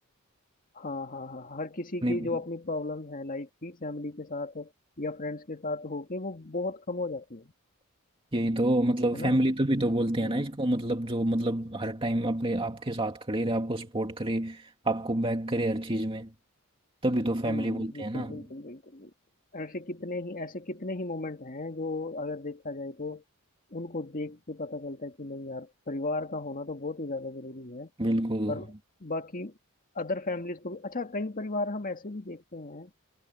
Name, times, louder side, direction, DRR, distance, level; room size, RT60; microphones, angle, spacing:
voice 1, 0.8-4.7 5.0-7.5 9.1-9.4 10.2-10.4 17.4-19.1 19.5-23.2 23.7-27.9 28.5-28.7 29.0-29.5 30.0-32.9, left 2 dB, 40° left, 1.9 m, -35 dB
voice 2, 8.3-16.3 17.0-18.4 28.0-28.6, right 1 dB, 25° right, 2.4 m, -28 dB
head